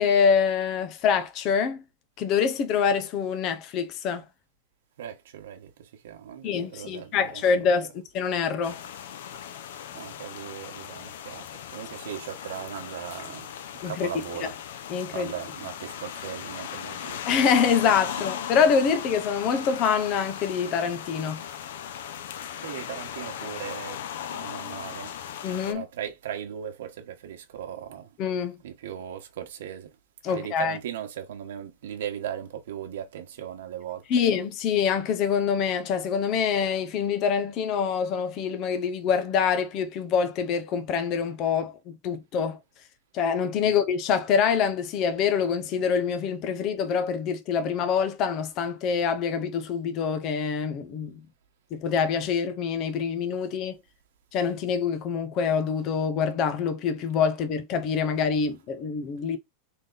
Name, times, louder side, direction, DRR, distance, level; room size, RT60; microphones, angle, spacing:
voice 1, 0.0-1.8 2.2-4.2 6.4-8.8 13.8-14.1 14.4-14.5 14.9-15.3 17.3-21.4 25.4-25.8 28.2-28.6 30.2-30.8 34.1-42.6 43.1-51.2 51.7-53.8 54.3-59.4, left 6 dB, 30° left, 0.6 m, -25 dB
voice 2, 5.0-7.7 9.9-13.5 13.7-14.5 15.1-17.2 22.6-24.0 24.3-25.1 25.7-28.1 28.6-29.9 30.3-34.0 43.6-43.8, right 9 dB, 80° right, 1.1 m, -38 dB
sound 1, 8.6-25.7, left 9 dB, 75° left, 0.6 m, -38 dB
3.8 x 3.4 x 3.9 m
supercardioid pair, 175°, 0 cm